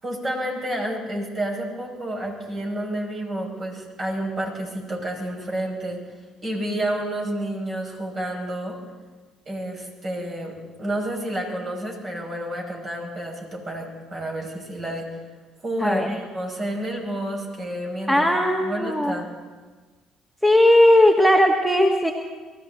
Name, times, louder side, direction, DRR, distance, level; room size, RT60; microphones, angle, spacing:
voice 1, 0.0-6.0 6.4-8.8 9.5-15.1 15.6-18.3 18.6-19.2, right 1 dB, 40° right, -1 dB, 5.9 m, -30 dB
voice 2, 18.1-19.2 20.4-22.1, left 1 dB, 5° right, 3 dB, 1.4 m, -17 dB
24.0 x 14.5 x 4.0 m, 1.3 s
hypercardioid pair, 60°, 0 cm